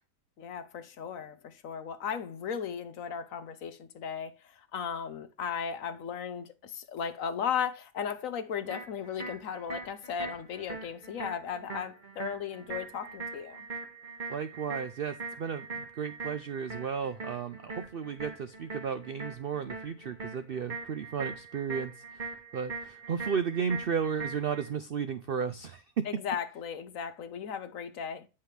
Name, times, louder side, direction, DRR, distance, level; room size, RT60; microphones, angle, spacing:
voice 1, 0.4-13.7 26.0-28.3, left 7 dB, 60° left, 1.1 m, -36 dB
sound 1, 8.7-24.7, right 4 dB, 30° right, 1.7 m, -42 dB
voice 2, 14.3-26.1, right 6 dB, 75° right, 0.5 m, -34 dB
9.3 x 5.7 x 3.3 m
omnidirectional pair, 1.7 m